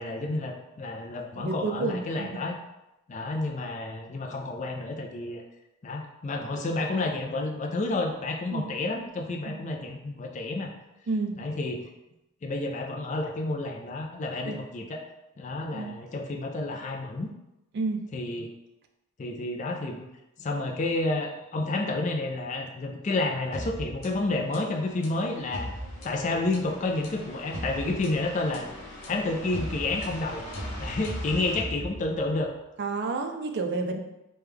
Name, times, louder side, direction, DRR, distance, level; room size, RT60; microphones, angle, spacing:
voice 1, 0.0-2.6 3.1-5.4 5.8-10.7 11.4-11.9 12.4-15.0 15.4-17.3 18.1-18.5 19.2-20.1 20.4-25.7 26.0-28.7 29.1-30.4 30.8-32.5, left 2 dB, 35° left, 2 dB, 0.3 m, -30 dB
voice 2, 1.4-2.4 8.5-8.7 9.5-9.6 11.1-11.4 14.5-14.6 15.7-15.9 17.7-18.1 32.8-34.0, right 3 dB, 45° right, 5 dB, 0.3 m, -30 dB
sound 1, 23.5-32.5, equal, 70° left, 0.8 m, -38 dB
3.2 x 2.2 x 3.4 m, 0.92 s
head